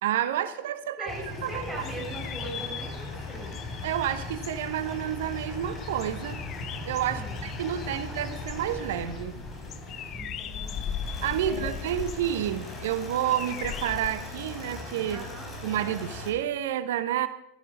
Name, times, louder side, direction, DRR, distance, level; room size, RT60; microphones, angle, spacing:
voice 1, 0.0-1.1 1.4-1.6 3.8-6.4 6.9-9.4 11.2-15.2 15.6-17.3, right 11 dB, 70° right, 13 dB, 0.9 m, -29 dB
voice 2, 1.0-3.6 7.1-7.5 7.9-8.2 10.1-11.0 11.5-11.7 15.1-15.5, right 1 dB, ahead, -5 dB, 5.4 m, -40 dB
sound 1, 1.1-16.3, left 2 dB, 25° left, 5.0 m, -39 dB
sound 2, 1.5-14.1, left 7 dB, 40° left, 1.0 m, -40 dB
15.0 x 13.0 x 5.1 m, 0.82 s
hypercardioid pair, 85°, 0 cm